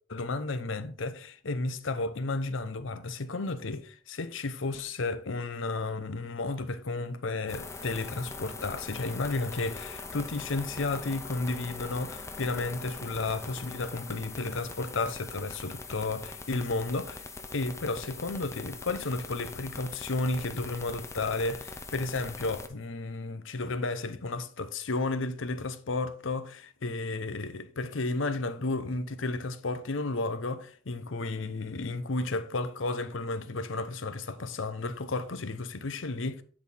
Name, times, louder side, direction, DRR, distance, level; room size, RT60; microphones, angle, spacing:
voice 1, 0.1-17.3 17.5-36.4, left 3 dB, 65° left, 0.7 m, -33 dB
sound 1, 7.5-22.7, left 3 dB, 15° left, 0.6 m, -42 dB
10.0 x 4.1 x 4.2 m
head